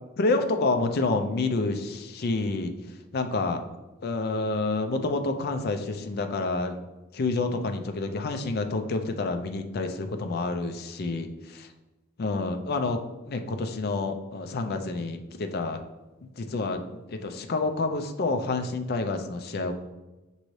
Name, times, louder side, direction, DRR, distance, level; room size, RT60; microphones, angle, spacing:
voice 1, 0.2-2.7 3.1-3.6 4.0-6.8 7.1-11.7 12.2-15.8 16.4-16.8 17.1-19.7, left 3 dB, 45° left, 7 dB, 0.4 m, -28 dB
6.2 x 2.7 x 3.1 m, 1.1 s
head